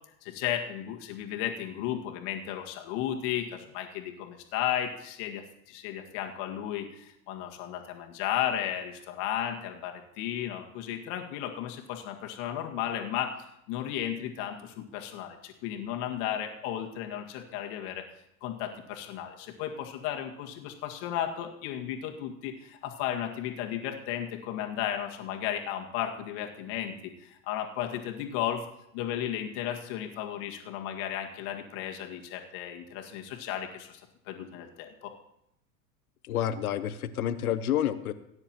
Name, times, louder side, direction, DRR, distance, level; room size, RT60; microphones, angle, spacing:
voice 1, 0.2-18.1 18.4-28.6 28.9-34.0 34.3-35.1, left 10 dB, 55° left, 2 dB, 1.9 m, -34 dB
voice 2, 36.2-38.1, left 10 dB, 80° left, 13 dB, 0.9 m, -29 dB
18.5 x 9.7 x 2.9 m, 0.79 s
hypercardioid pair, 90°, 43 cm